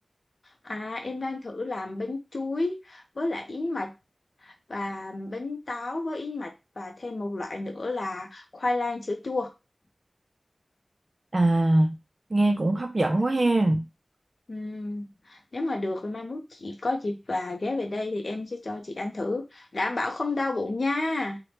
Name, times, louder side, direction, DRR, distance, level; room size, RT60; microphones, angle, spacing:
voice 1, 0.6-3.9 4.4-6.5 6.8-9.5 14.5-21.4, left 2 dB, 60° left, 0.5 m, -31 dB
voice 2, 11.3-12.0 12.3-13.9, right 2 dB, 45° right, 0.3 m, -22 dB
2.8 x 2.1 x 3.2 m
wide cardioid pair, 50°, 0 cm